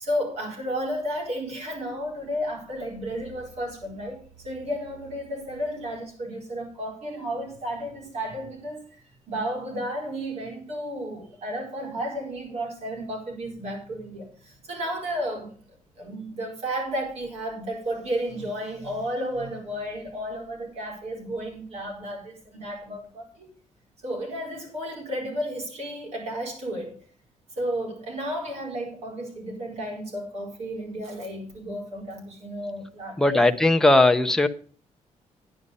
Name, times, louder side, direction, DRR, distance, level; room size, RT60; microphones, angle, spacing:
voice 1, 0.0-4.2 4.4-8.9 9.3-15.5 16.0-23.5 24.0-27.0 27.6-33.5, equal, 60° right, 4.7 m, -32 dB
voice 2, 33.2-34.5, left 2 dB, 5° left, 0.6 m, -18 dB
10.0 x 9.8 x 5.3 m
wide cardioid pair, 180°, 12 cm